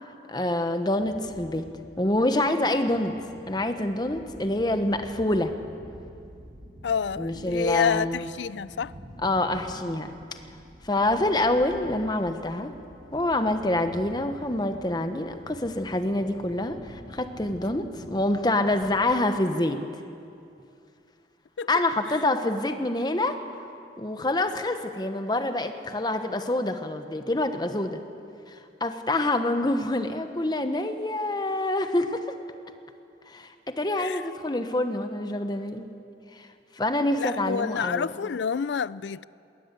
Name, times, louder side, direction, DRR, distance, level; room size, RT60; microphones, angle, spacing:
voice 1, 0.3-1.7 2.0-3.2 3.5-5.5 7.2-8.2 9.2-10.1 10.8-12.7 13.1-19.9 21.7-23.4 24.0-28.0 28.5-32.4 33.3-35.9 36.3-36.5 36.7-38.1, left 1 dB, 25° left, 1.1 m, -26 dB
sound 1, 0.9-19.0, equal, 50° right, 6.3 m, -47 dB
voice 2, 6.8-8.9 21.6-21.7 34.0-34.2 37.1-39.3, left 6 dB, 90° left, 0.4 m, -28 dB
21.0 x 18.0 x 8.3 m
head